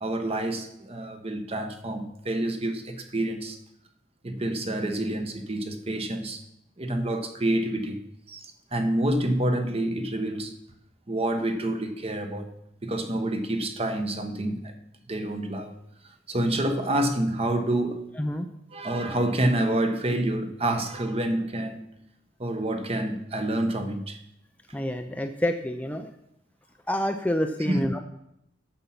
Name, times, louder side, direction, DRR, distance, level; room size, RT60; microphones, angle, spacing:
voice 1, 0.0-3.6 4.2-6.4 6.8-10.6 11.1-12.5 12.8-14.7 15.1-15.7 16.0-18.0 18.7-21.9 22.4-24.2 27.7-27.9, right 1 dB, 30° right, 7 dB, 1.1 m, -28 dB
voice 2, 18.2-18.5 24.7-26.1 26.9-28.0, equal, 10° left, 6 dB, 0.5 m, -28 dB
9.0 x 7.2 x 5.8 m, 0.78 s
head